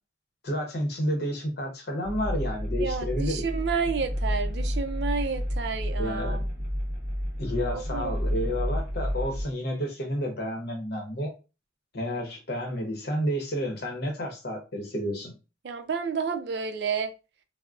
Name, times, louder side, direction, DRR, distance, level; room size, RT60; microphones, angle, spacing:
voice 1, 0.4-3.4 6.0-6.4 7.4-11.3 11.9-15.3, equal, 55° left, 0.8 m, -30 dB
sound 1, 2.0-9.4, equal, 35° right, 1.0 m, -30 dB
voice 2, 2.8-6.4 7.7-8.1 15.6-17.1, right 5 dB, 60° right, 0.4 m, -30 dB
3.6 x 2.0 x 2.4 m
head